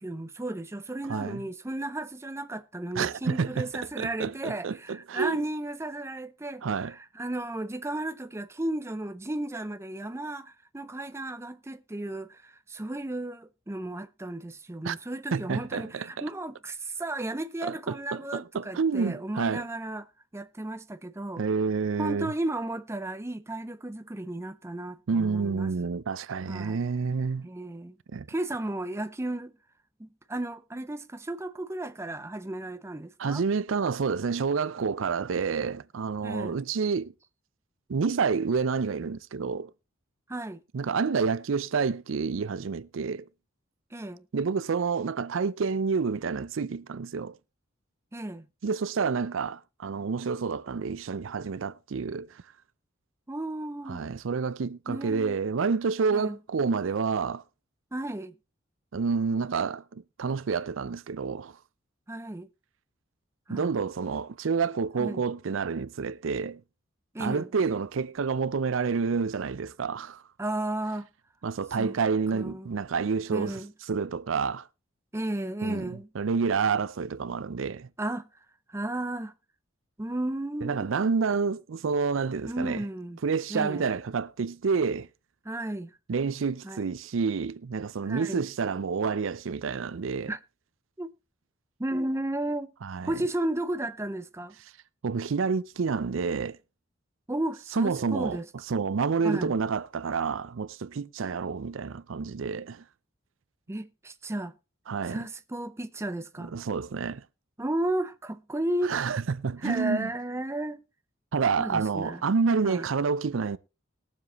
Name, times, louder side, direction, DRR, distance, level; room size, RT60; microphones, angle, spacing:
voice 1, 0.0-20.1 20.3-21.4 22.0-25.7 26.5-26.8 27.4-28.0 28.3-29.5 30.0-33.4 36.2-36.6 40.3-40.6 43.9-44.2 48.1-48.5 53.3-54.1 54.9-55.3 56.1-56.4 57.9-58.3 62.1-62.5 63.5-63.7 65.0-65.2 67.1-67.5 70.4-71.1 71.8-72.0 72.3-72.7 73.3-73.7 75.1-76.1 78.0-78.3 78.7-79.3 80.0-80.9 82.4-83.2 83.5-83.9 85.5-85.9 86.6-86.9 88.0-88.5 90.3-90.4 91.0-91.1 91.8-92.7 93.0-94.5 97.3-98.5 99.2-99.5 103.7-104.5 105.1-106.5 107.6-109.0 109.6-110.8 111.6-112.2 112.6-112.9, right 1 dB, 15° right, 0.5 m, -34 dB
voice 2, 1.1-1.4 2.9-5.4 6.6-6.9 14.8-15.0 15.3-16.2 17.6-19.6 21.4-22.3 25.1-27.5 28.1-28.3 33.2-37.1 37.9-39.7 40.7-43.3 44.3-47.4 48.6-52.4 53.9-57.4 58.9-61.6 63.5-66.6 67.2-70.2 71.4-73.6 73.9-74.7 75.6-77.9 80.6-82.8 83.2-85.1 86.1-90.3 92.8-93.1 95.0-96.6 97.7-98.4 98.7-102.8 104.9-105.3 106.4-107.2 108.8-110.1 111.3-113.6, right 5 dB, 70° right, 0.5 m, -29 dB
20.5 x 7.3 x 3.0 m
head